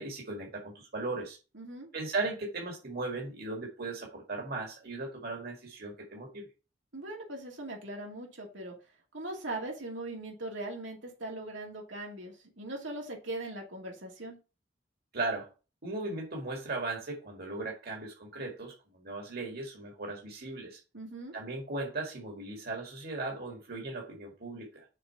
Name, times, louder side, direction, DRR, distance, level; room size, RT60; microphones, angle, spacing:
voice 1, 0.0-1.4 1.9-6.5 15.1-15.5 15.8-20.8 21.3-24.8, right 3 dB, 55° right, 0 dB, 2.0 m, -37 dB
voice 2, 1.5-1.9 6.9-8.7 9.1-14.4 20.9-21.3, right 2 dB, 90° right, -1 dB, 2.5 m, -40 dB
6.6 x 4.1 x 5.7 m, 0.32 s
head